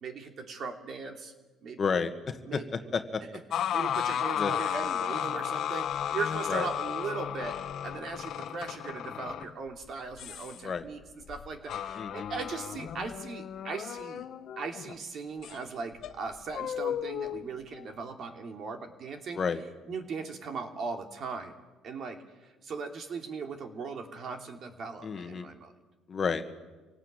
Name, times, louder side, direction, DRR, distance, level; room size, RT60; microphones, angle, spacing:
voice 1, 0.0-1.3 1.6-1.8 2.4-2.9 3.7-11.0 11.3-14.2 14.6-19.4 19.9-21.6 21.8-25.7, right 4 dB, 50° right, 5 dB, 3.0 m, -38 dB
voice 2, 1.8-3.2 4.4-4.5 6.5-6.7 10.6-10.8 12.0-12.3 19.3-19.6 25.0-25.5 26.1-26.4, left 5 dB, 35° left, 7 dB, 1.7 m, -31 dB
sound 1, 3.5-15.0 15.4-15.5 16.0-17.9, left 9 dB, 55° left, 1.1 m, -34 dB
25.5 x 18.0 x 9.0 m, 1.2 s
cardioid pair, 120°, 0 cm